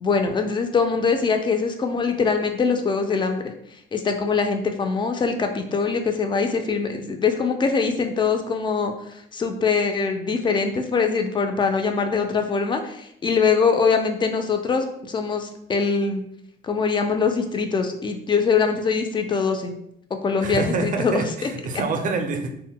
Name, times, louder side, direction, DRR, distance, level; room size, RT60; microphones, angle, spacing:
voice 1, 0.0-3.5 3.9-16.2 16.6-19.7 20.2-21.5, left 5 dB, 25° left, 5 dB, 0.3 m, -23 dB
voice 2, 20.4-22.5, right 3 dB, 45° right, 5 dB, 0.4 m, -26 dB
2.1 x 2.1 x 3.7 m, 0.74 s
cardioid pair, 120°, 19 cm